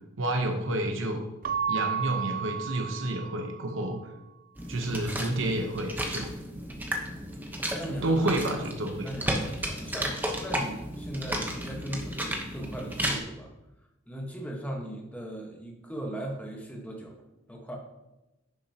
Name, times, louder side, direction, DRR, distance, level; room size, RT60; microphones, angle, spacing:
voice 1, 0.2-1.2 1.7-4.0 4.7-6.3 8.0-9.1, right 1 dB, 65° right, 3 dB, 0.9 m, -29 dB
Keyboard (musical) / Bell, 1.4-3.9, right 7 dB, 45° right, 0.3 m, -32 dB
sound 1, 4.6-13.2, right 1 dB, 10° right, 1.0 m, -33 dB
voice 2, 7.7-8.2 9.0-13.5 14.1-17.1 17.5-17.8, right 1 dB, 5° left, 0 dB, 1.2 m, -38 dB
10.0 x 6.9 x 2.9 m, 0.98 s
head